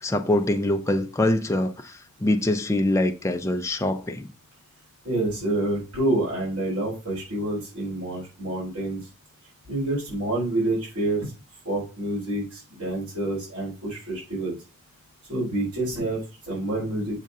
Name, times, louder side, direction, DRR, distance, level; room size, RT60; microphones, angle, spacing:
voice 1, 0.0-4.3, left 1 dB, 15° left, 0.4 m, -24 dB
voice 2, 5.0-9.0 9.7-11.3 11.6-14.6 15.3-17.2, right 1 dB, 80° right, 3.7 m, -28 dB
6.5 x 3.7 x 5.3 m
head